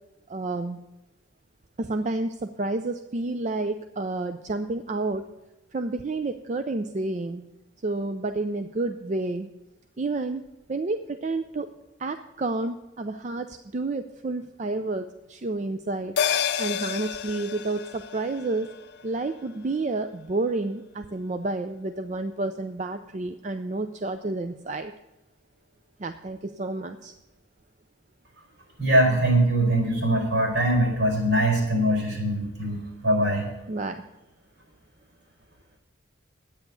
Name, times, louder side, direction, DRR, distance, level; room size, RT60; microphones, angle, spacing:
voice 1, 0.3-0.8 1.8-5.3 5.7-7.4 7.8-9.5 10.0-10.4 10.7-11.7 12.0-16.2 16.6-18.7 19.0-24.9 26.0-27.1 33.7-34.0, right 2 dB, 35° right, 8 dB, 0.4 m, -30 dB
sound 1, 16.2-20.9 21.2-21.3, left 8 dB, 55° left, 0.5 m, -31 dB
voice 2, 28.8-33.5, right 1 dB, 70° right, 0 dB, 4.9 m, -22 dB
10.5 x 9.0 x 6.9 m, 1.0 s
head